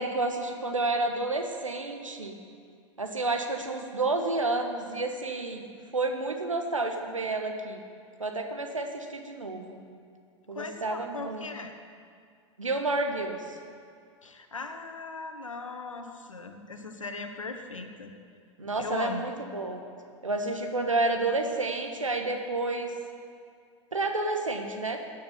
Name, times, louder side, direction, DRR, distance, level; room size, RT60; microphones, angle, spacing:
voice 1, 0.0-2.4 3.0-5.6 5.9-7.8 8.2-9.8 10.5-11.5 12.6-13.6 18.6-19.8 20.2-22.9 23.9-25.0, right 2 dB, 85° right, 4 dB, 1.4 m, -30 dB
voice 2, 10.5-11.7 14.2-18.1 18.8-19.3, left 3 dB, 80° left, 6 dB, 1.3 m, -38 dB
16.0 x 9.4 x 5.7 m, 2.3 s
figure-of-eight pair, 90°, 16 cm